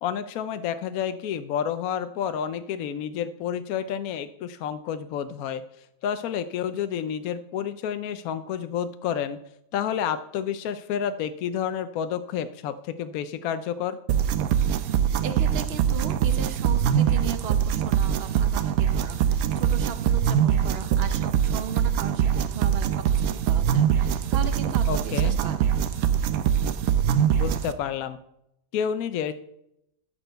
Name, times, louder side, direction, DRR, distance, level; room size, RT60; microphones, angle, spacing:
voice 1, 0.0-5.6 6.0-9.4 9.7-14.0 24.9-25.4 27.4-28.2 28.7-29.3, left 8 dB, 75° left, 11 dB, 1.0 m, -30 dB
sound 1, 14.1-27.7, right 9 dB, 75° right, 1.1 m, -23 dB
voice 2, 15.2-25.7, right 7 dB, 50° right, 9 dB, 1.0 m, -37 dB
13.5 x 4.5 x 6.5 m, 0.80 s
omnidirectional pair, 1.6 m